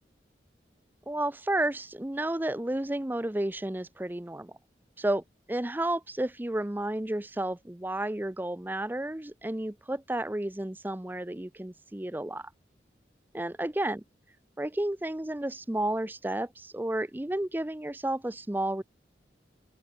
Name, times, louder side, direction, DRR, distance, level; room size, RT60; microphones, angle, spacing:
voice 1, 1.1-4.5 5.0-5.2 5.5-12.4 13.3-14.0 14.6-18.8, right 1 dB, 10° right, 0.5 m, -31 dB
open air
head